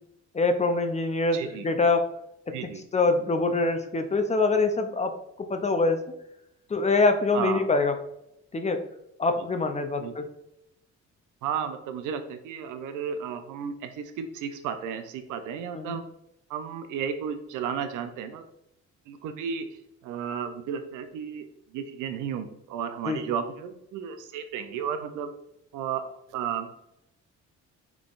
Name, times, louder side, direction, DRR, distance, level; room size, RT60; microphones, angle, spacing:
voice 1, 0.3-2.1 2.6-6.0 6.7-7.9 8.5-8.8 9.2-10.3 15.7-16.0 23.1-23.2, left 3 dB, 25° left, 7 dB, 0.4 m, -24 dB
voice 2, 1.3-1.7 2.5-2.8 7.3-7.7 9.4-9.5 10.0-10.1 11.4-16.0 16.5-18.4 19.1-21.5 21.7-25.3 25.7-26.7, right 7 dB, 85° right, 8 dB, 0.5 m, -33 dB
3.8 x 3.4 x 2.4 m, 0.81 s
cardioid pair, 90°, 30 cm